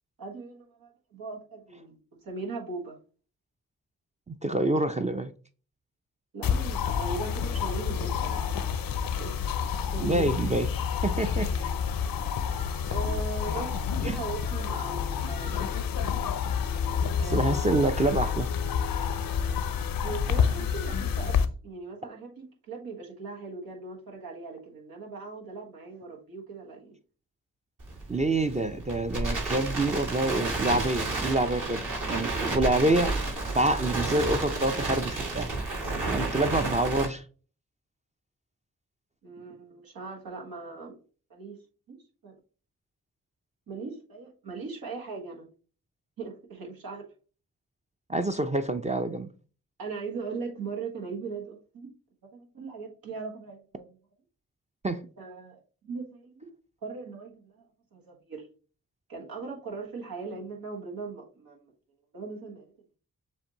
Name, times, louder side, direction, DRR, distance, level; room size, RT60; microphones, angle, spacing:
voice 1, 0.2-3.0 6.3-8.5 8.8-10.3 12.2-12.3 12.9-15.7 17.2-17.6 20.0-26.9 39.2-40.9 41.3-41.6 41.9-42.4 43.7-45.5 46.2-47.1 49.8-51.9 52.3-53.9 55.2-56.5 56.8-57.6 57.9-58.5 59.1-61.6 62.1-62.7, right 4 dB, 90° right, 1.5 m, -39 dB
voice 2, 4.3-5.3 10.0-10.7 11.0-11.7 14.0-14.2 17.3-18.5 28.1-31.8 32.1-33.1 33.5-35.5 36.1-37.2 48.1-49.3 54.8-55.1, right 2 dB, 20° right, 0.4 m, -27 dB
sound 1, 6.4-21.5, left 7 dB, 75° left, 0.6 m, -29 dB
Crackle, 27.8-37.0, right 2 dB, 60° right, 2.0 m, -31 dB
7.0 x 2.6 x 2.9 m
cardioid pair, 50°, 35 cm